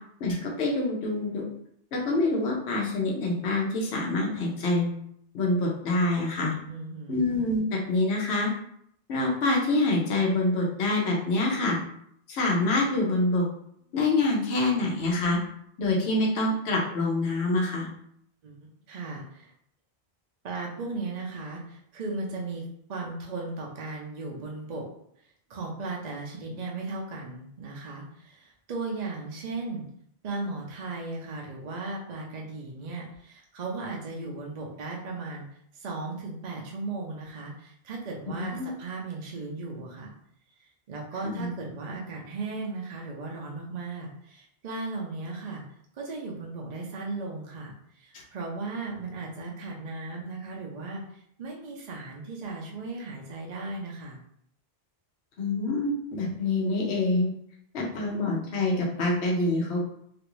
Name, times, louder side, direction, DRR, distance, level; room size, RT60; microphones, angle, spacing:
voice 1, 0.2-1.4 1.9-4.9 5.3-6.6 7.1-8.5 9.1-11.8 12.3-13.4 13.9-15.4 15.8-17.9 38.4-38.7 41.2-41.5 55.4-57.3 57.7-59.8, left 2 dB, 85° left, -2 dB, 1.1 m, -26 dB
voice 2, 6.7-7.3 18.4-18.6 18.9-19.5 20.4-24.9 25.5-29.8 30.2-35.4 35.7-40.1 40.6-45.6 45.9-54.2, right 3 dB, 50° right, -2 dB, 0.6 m, -36 dB
3.0 x 2.5 x 3.0 m, 0.69 s
omnidirectional pair, 1.1 m